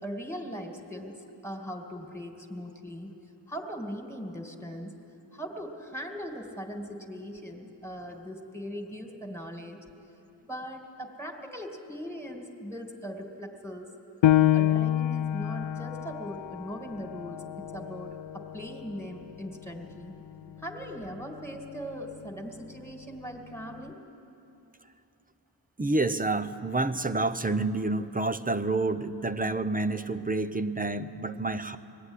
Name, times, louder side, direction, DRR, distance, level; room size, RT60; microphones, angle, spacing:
voice 1, 0.0-3.1 3.5-4.9 5.3-9.8 10.4-13.9 14.5-20.2 20.6-24.0, equal, 5° left, 3 dB, 2.5 m, -40 dB
Piano, 14.2-19.4 19.9-20.0 20.6-21.1, left 12 dB, 75° left, 0.5 m, -27 dB
voice 2, 25.8-31.8, right 2 dB, 20° right, 10 dB, 0.8 m, -28 dB
21.0 x 14.5 x 9.9 m, 2.8 s
wide cardioid pair, 65°, 45 cm